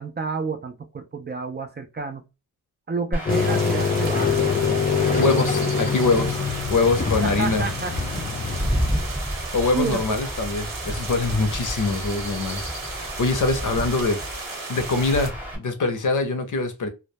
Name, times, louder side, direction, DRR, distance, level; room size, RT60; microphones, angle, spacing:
voice 1, 0.0-2.3 2.9-4.5 7.2-8.3 9.7-10.0, right 4 dB, 30° right, 0.4 m, -30 dB
Chirp tweet / Wind / Stream, 3.1-15.6, equal, 5° right, 0.9 m, -32 dB
sound 1, 3.3-9.2, left 5 dB, 25° left, 0.5 m, -24 dB
sound 2, 3.3-15.3, right 4 dB, 75° right, 0.8 m, -36 dB
voice 2, 5.2-6.4 6.7-7.7 9.5-16.9, left 3 dB, 65° left, 0.7 m, -24 dB
2.1 x 2.1 x 2.7 m
wide cardioid pair, 160°, 34 cm